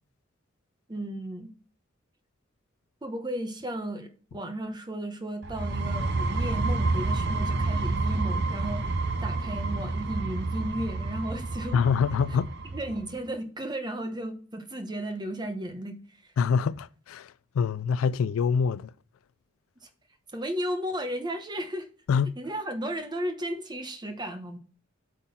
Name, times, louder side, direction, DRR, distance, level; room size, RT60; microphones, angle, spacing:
voice 1, 0.9-1.5 3.0-11.8 12.3-12.4 12.7-15.9 16.2-16.3 19.8-19.9 20.3-21.9 22.4-24.6, right 1 dB, 20° right, 1.1 m, -34 dB
sound 1, 5.4-13.1, right 2 dB, 60° right, 0.7 m, -29 dB
voice 2, 11.7-12.5 16.4-18.9 22.1-22.3, left 6 dB, 85° left, 0.3 m, -25 dB
8.1 x 3.8 x 5.7 m
head